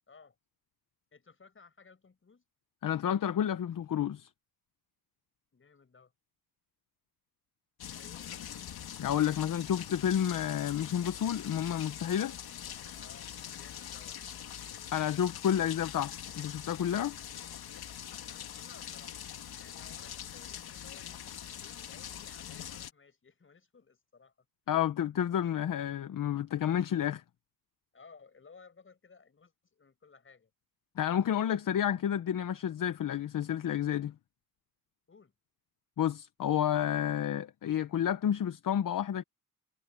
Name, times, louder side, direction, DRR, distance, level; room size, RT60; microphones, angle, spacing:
voice 1, 1.1-2.4 5.5-6.1 7.9-8.4 13.0-14.2 18.3-19.3 19.5-24.3 27.9-30.5 35.1-35.3, left 5 dB, 35° left, 5.2 m, -58 dB
voice 2, 2.8-4.3 9.0-12.4 14.9-17.2 24.7-27.2 31.0-34.1 36.0-39.2, left 10 dB, 60° left, 0.9 m, -30 dB
sound 1, 7.8-22.9, left 10 dB, 80° left, 2.0 m, -43 dB
wide cardioid pair, 125°, 37 cm